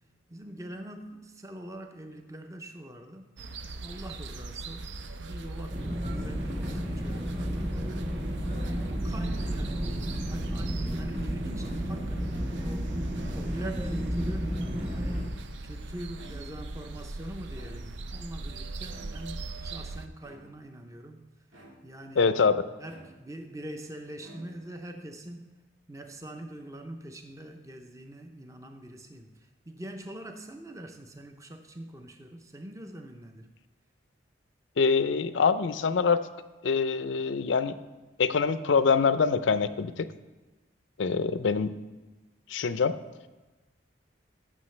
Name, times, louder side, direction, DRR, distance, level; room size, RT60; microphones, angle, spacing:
voice 1, 0.3-3.3 3.8-4.9 5.2-7.9 8.5-12.9 13.3-15.2 15.6-21.2 21.8-22.4 22.8-25.5 25.9-29.3 29.7-33.5, right 1 dB, 15° right, 5 dB, 0.6 m, -43 dB
sound 1, 3.4-20.1, right 2 dB, 70° right, 0.5 m, -39 dB
sound 2, 5.7-15.3, equal, 40° right, 2.9 m, -32 dB
sound 3, 11.9-12.4 13.0-13.8 14.6-15.4 16.1-16.8 17.5-18.2 18.9-19.4 20.2-20.8 21.5-22.1 22.8-23.5 24.2-24.9, right 1 dB, 85° right, 1.7 m, -52 dB
voice 2, 22.2-22.6 34.8-36.2 36.6-37.8 38.2-40.1 41.0-41.7 42.5-43.0, left 5 dB, 75° left, 12 dB, 0.5 m, -24 dB
15.0 x 6.3 x 3.2 m, 1.2 s
head